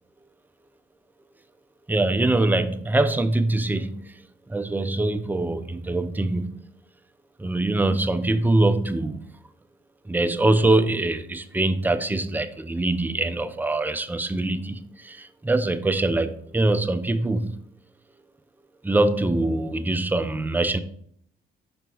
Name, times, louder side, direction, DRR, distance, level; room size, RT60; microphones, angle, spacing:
voice 1, 1.9-4.2 4.5-6.6 7.4-9.2 10.0-17.6 18.8-20.8, right 2 dB, 10° right, 9 dB, 0.5 m, -23 dB
5.5 x 4.5 x 3.9 m, 0.65 s
cardioid pair, 90°, 20 cm